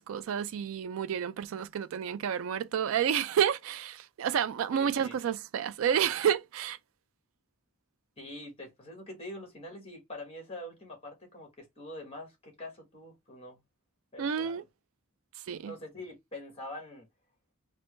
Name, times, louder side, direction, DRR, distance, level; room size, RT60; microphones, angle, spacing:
voice 1, 0.0-6.8 14.2-14.6 15.5-15.7, right 8 dB, 70° right, 0.3 m, -30 dB
voice 2, 4.7-5.2 8.2-13.6 14.1-14.6 15.6-17.1, left 1 dB, 30° left, 1.5 m, -44 dB
4.4 x 2.1 x 3.1 m
head